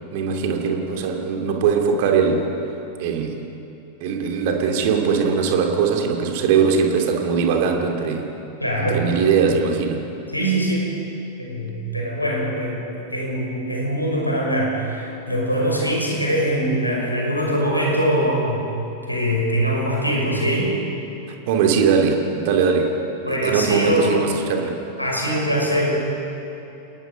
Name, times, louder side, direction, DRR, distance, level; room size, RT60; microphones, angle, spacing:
voice 1, 0.1-2.5 3.0-3.4 4.0-8.3 8.8-10.1 21.3-23.0 23.3-24.8, right 6 dB, 50° right, 2 dB, 2.9 m, -20 dB
voice 2, 8.6-9.1 10.3-10.9 11.4-18.7 19.1-20.8 23.2-24.1 25.0-26.0, equal, 85° left, -2 dB, 6.3 m, -22 dB
29.5 x 19.0 x 5.5 m, 2.9 s
figure-of-eight pair, 90°, 0 cm